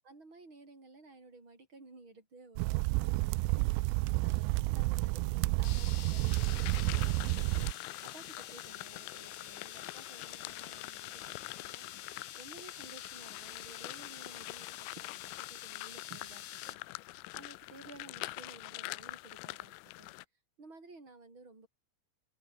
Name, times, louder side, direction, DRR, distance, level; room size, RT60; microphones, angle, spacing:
voice 1, 0.0-3.7 4.2-7.6 8.0-11.9 12.3-17.1 17.3-20.1 20.6-21.7, right 3 dB, 25° right, 7.4 m, -55 dB
sound 1, 2.6-7.7, right 25 dB, 85° right, 2.8 m, -30 dB
sound 2, 5.6-16.7, left 11 dB, 60° left, 3.2 m, -48 dB
sound 3, 6.3-20.3, left 24 dB, 85° left, 3.1 m, -45 dB
open air
omnidirectional pair, 6.0 m